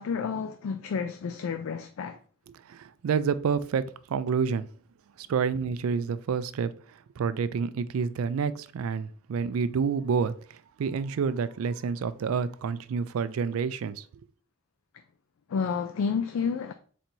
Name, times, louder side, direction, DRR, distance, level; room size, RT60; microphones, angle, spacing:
voice 1, 0.0-2.2 15.5-16.7, left 6 dB, 75° left, 0.3 m, -30 dB
voice 2, 2.6-4.7 5.2-14.0, right 6 dB, 85° right, 0.3 m, -29 dB
4.2 x 2.6 x 4.4 m
head